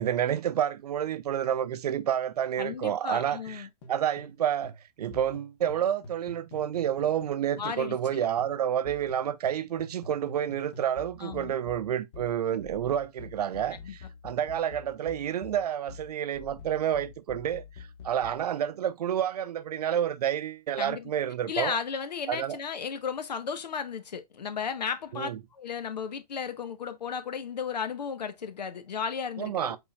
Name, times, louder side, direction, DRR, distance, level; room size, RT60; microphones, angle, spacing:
voice 1, 0.0-21.8 22.3-22.6 25.1-25.4 29.4-29.8, right 10 dB, 70° right, 0.6 m, -29 dB
voice 2, 2.6-3.7 7.6-8.2 11.2-11.5 13.8-13.9 20.8-21.1 21.5-29.7, left 6 dB, 80° left, 1.1 m, -34 dB
sound 1, 3.5-8.1 8.4-18.5, left 4 dB, 40° left, 1.3 m, -47 dB
5.3 x 3.8 x 2.3 m
hypercardioid pair, 145°, 21 cm